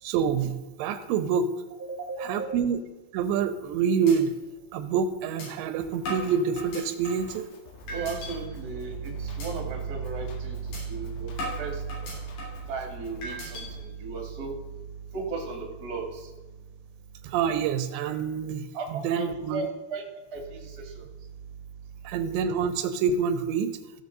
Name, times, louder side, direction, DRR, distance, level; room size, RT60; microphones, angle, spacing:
voice 1, 0.0-1.5 2.2-2.8 3.1-4.3 4.7-7.5 17.2-19.7 22.0-23.8, right 6 dB, 85° right, 9 dB, 3.0 m, -27 dB
voice 2, 2.1-2.5 7.8-11.8 12.7-14.6 15.1-16.3 18.7-20.0 20.3-21.0, right 4 dB, 45° right, 0 dB, 1.2 m, -34 dB
sound 1, 3.4-3.7 4.1-4.2 4.6-4.7 5.4-5.5 6.1-7.3 7.9-8.3 8.7-9.0 9.4-9.5 9.9-10.1 10.7-10.8 11.4-12.7 13.2-13.6, left 1 dB, 65° left, 5.5 m, -37 dB
Drum kit, 5.8-13.8, left 4 dB, 85° left, 3.8 m, -50 dB
16.0 x 7.0 x 3.9 m, 1.2 s
omnidirectional pair, 5.1 m